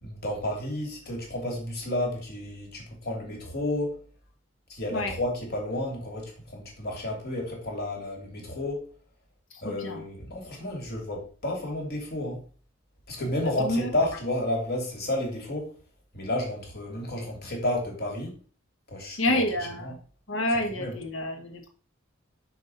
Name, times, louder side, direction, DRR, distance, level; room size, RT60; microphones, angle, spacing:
voice 1, 0.0-4.0 4.7-8.9 9.6-12.4 13.1-15.7 16.1-18.4 18.9-19.4 19.8-19.9 20.8-21.0, left 1 dB, 55° left, 0 dB, 2.9 m, -31 dB
voice 2, 9.5-10.0 13.4-13.9 19.2-20.0 20.3-21.7, left 1 dB, 75° left, 4 dB, 1.6 m, -28 dB
6.4 x 5.0 x 5.6 m, 0.41 s
head